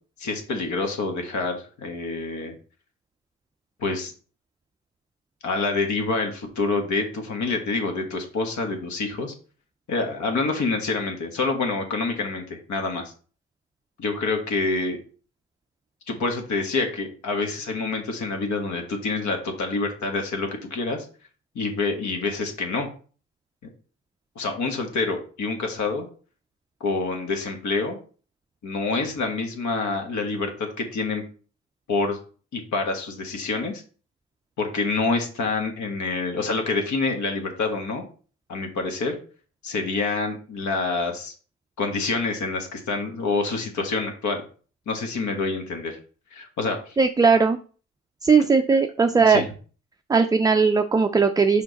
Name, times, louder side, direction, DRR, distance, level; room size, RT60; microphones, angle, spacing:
voice 1, 0.2-2.5 3.8-4.1 5.4-9.3 9.9-13.0 14.0-15.0 16.1-21.1 21.5-22.9 24.3-26.1 26.8-28.0 28.6-31.2 31.9-32.2 32.5-33.8 34.6-38.0 38.5-39.2 39.6-41.3 41.8-44.4 44.9-46.0 46.3-47.0 49.1-49.4, left 3 dB, 70° left, 4 dB, 1.5 m, -27 dB
voice 2, 47.0-47.6 48.2-49.4 50.1-51.6, right 5 dB, 15° right, 7 dB, 0.3 m, -18 dB
5.2 x 4.5 x 4.0 m, 0.40 s
cardioid pair, 90°, 30 cm